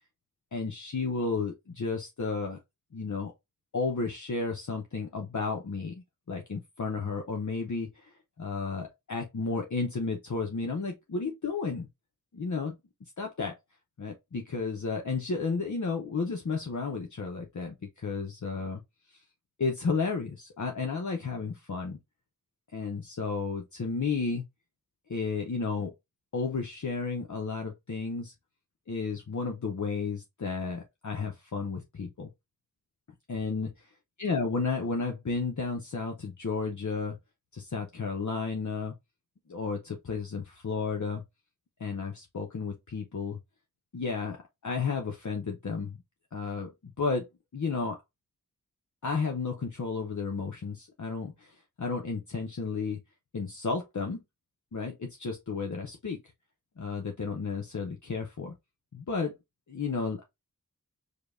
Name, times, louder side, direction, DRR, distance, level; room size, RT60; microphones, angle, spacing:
voice 1, 0.5-2.6 2.9-3.3 3.7-11.9 12.3-12.8 13.2-13.6 14.0-18.8 19.6-22.0 22.7-24.4 25.1-25.9 26.3-28.3 28.9-32.3 33.3-33.7 34.2-37.2 37.5-38.9 39.5-41.2 41.8-43.4 43.9-46.0 46.3-47.3 47.5-48.0 49.0-53.0 53.3-54.2 54.7-56.2 56.8-58.5 58.9-59.3 59.7-60.2, left 4 dB, 55° left, 0.6 m, -32 dB
5.0 x 2.2 x 2.4 m
wide cardioid pair, 40°, 35 cm